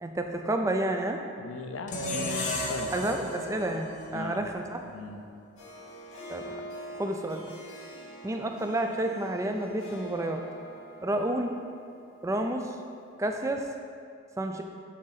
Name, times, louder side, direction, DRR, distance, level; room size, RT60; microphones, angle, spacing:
voice 1, 0.0-1.2 2.9-4.8 6.3-7.5 8.2-10.4 11.0-11.5 12.2-12.8 13.2-13.7 14.4-14.6, right 1 dB, 15° right, 4 dB, 0.3 m, -30 dB
voice 2, 1.4-2.9 4.1-4.4 4.8-5.2, left 3 dB, 70° left, 5 dB, 0.6 m, -38 dB
sound 1, 1.9-5.1, left 1 dB, 35° left, 0.7 m, -34 dB
Harp, 5.6-13.1, equal, 85° left, 1.7 m, -45 dB
10.0 x 3.8 x 4.0 m, 2.4 s
head